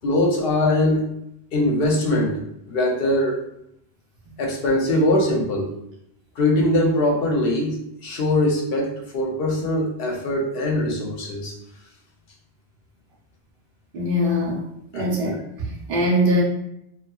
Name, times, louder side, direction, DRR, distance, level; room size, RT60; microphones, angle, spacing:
voice 1, 0.0-1.1 1.5-2.4 2.7-3.4 4.4-5.7 6.4-11.5 14.9-15.0, left 1 dB, 60° left, -1 dB, 0.8 m, -22 dB
voice 2, 13.9-14.6 14.9-16.4, equal, 55° right, -2 dB, 0.8 m, -22 dB
2.7 x 2.3 x 2.3 m, 0.78 s
omnidirectional pair, 1.2 m